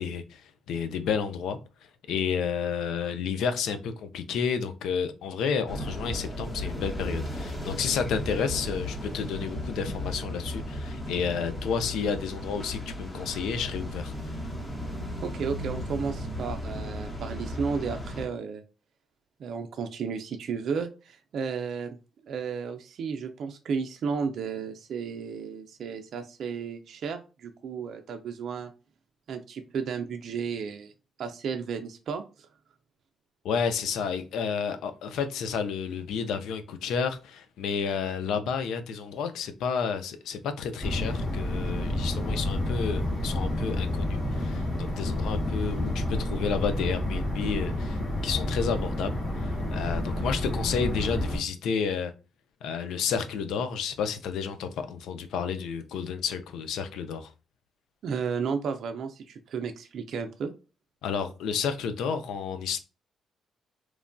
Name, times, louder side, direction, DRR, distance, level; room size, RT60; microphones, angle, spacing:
voice 1, 0.0-1.6 2.1-14.1 33.4-52.1 52.6-57.3 61.0-62.8, left 6 dB, 80° left, 0.4 m, -31 dB
sound 1, 5.7-18.3, left 1 dB, 15° left, 0.9 m, -35 dB
voice 2, 15.2-18.6 19.4-22.0 22.2-28.7 29.3-30.9 31.2-32.2 58.0-60.5, right 6 dB, 65° right, 0.4 m, -33 dB
sound 2, 40.8-51.4, left 1 dB, 55° left, 1.6 m, -29 dB
3.0 x 2.2 x 2.5 m
cardioid pair, 90°, 0 cm